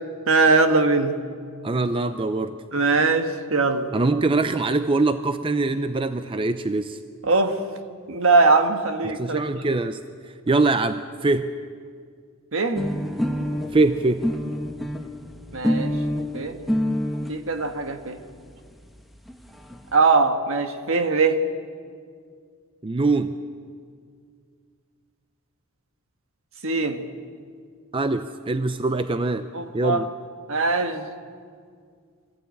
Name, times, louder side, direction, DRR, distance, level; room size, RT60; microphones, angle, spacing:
voice 1, 0.3-1.2 2.7-3.9 7.2-7.6 8.1-9.4 12.5-12.9 15.5-15.9 16.3-16.6 17.3-18.2 19.9-21.4 26.6-27.0 29.5-30.0 30.5-31.1, right 3 dB, 65° right, 7 dB, 1.5 m, -21 dB
voice 2, 1.6-2.6 3.9-7.0 9.0-10.0 10.5-11.5 13.7-14.2 22.8-23.3 27.9-29.5 29.7-30.1, right 3 dB, 25° right, 10 dB, 0.5 m, -23 dB
sound 1, 12.7-17.3 18.2-18.3 18.5-18.6 18.9-19.0 19.2-19.8, equal, ahead, 1.1 m, -27 dB
24.0 x 16.0 x 8.5 m, 2.1 s
head